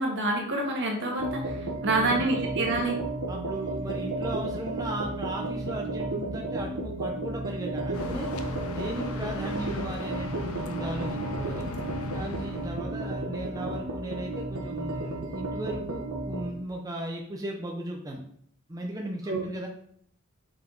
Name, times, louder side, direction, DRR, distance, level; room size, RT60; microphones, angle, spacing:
voice 1, 0.0-3.0 19.3-19.4, right 2 dB, 55° right, 0 dB, 1.5 m, -27 dB
sound 1, 1.2-16.5, right 2 dB, 80° right, 0.9 m, -33 dB
voice 2, 1.8-2.5 3.3-8.3 8.7-11.7 12.1-18.2 18.7-19.7, right 1 dB, 15° right, 0 dB, 0.6 m, -36 dB
sound 2, 7.9-12.9, left 3 dB, 70° left, 0.6 m, -37 dB
5.5 x 4.9 x 3.8 m, 0.65 s
head